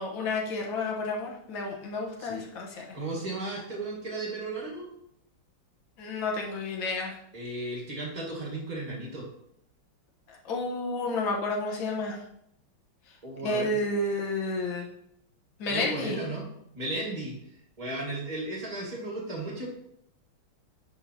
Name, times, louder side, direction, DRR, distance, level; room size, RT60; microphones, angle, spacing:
voice 1, 0.0-3.0 6.0-7.2 10.3-12.2 13.4-14.9 15.6-16.2, left 2 dB, 65° left, -1 dB, 1.9 m, -31 dB
voice 2, 2.9-4.9 7.3-9.3 13.2-13.7 15.7-16.5 16.7-17.3 17.8-19.7, right 2 dB, 20° right, -3 dB, 1.7 m, -35 dB
10.0 x 4.5 x 2.8 m, 0.75 s
omnidirectional pair, 2.4 m